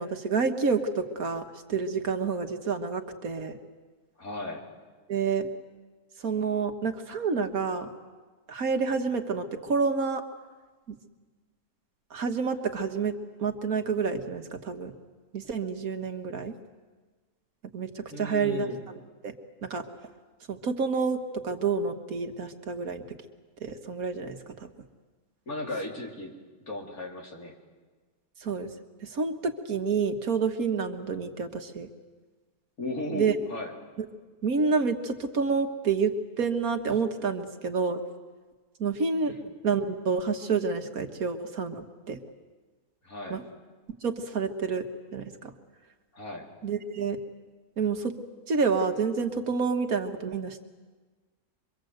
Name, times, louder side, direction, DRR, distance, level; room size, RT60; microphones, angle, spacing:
voice 1, 0.0-3.6 5.1-5.5 6.2-7.9 8.5-10.2 10.9-11.0 12.1-13.1 13.4-14.9 15.3-16.5 17.7-19.3 19.6-19.8 20.5-23.0 23.6-24.7 28.4-28.7 29.0-31.9 33.1-33.3 34.4-38.0 38.8-39.3 39.6-42.2 43.3-43.4 44.0-44.9 45.1-45.5 46.6-47.2 47.8-48.1 48.5-50.6, right 5 dB, 70° right, 6 dB, 1.9 m, -29 dB
voice 2, 4.2-4.6 18.1-18.9 25.5-26.4 26.7-27.5 32.8-33.7 39.2-39.5 43.0-43.4 46.1-46.5, left 1 dB, 70° left, 0 dB, 4.0 m, -36 dB
25.0 x 24.0 x 8.0 m, 1.4 s
omnidirectional pair, 1.6 m